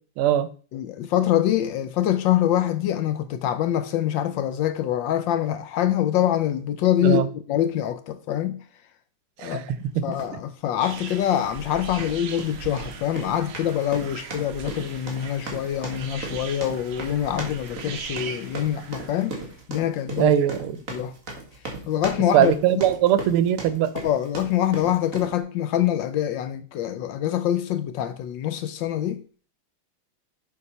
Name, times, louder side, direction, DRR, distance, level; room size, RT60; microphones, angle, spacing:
voice 1, 0.2-0.5 7.0-7.3 9.4-10.1 20.2-20.8 22.3-23.9, right 11 dB, 90° right, 1.6 m, -21 dB
voice 2, 0.7-7.2 7.5-8.6 9.4-9.7 10.0-19.4 19.7-20.3 20.9-21.1 21.9-22.5 24.0-29.2, left 11 dB, 75° left, 1.1 m, -25 dB
sound 1, 10.1-10.3 10.9-11.1 11.8-25.4, right 3 dB, 40° right, 2.0 m, -37 dB
sound 2, 10.8-19.6, right 7 dB, 60° right, 1.4 m, -40 dB
7.2 x 4.2 x 5.4 m
omnidirectional pair, 2.4 m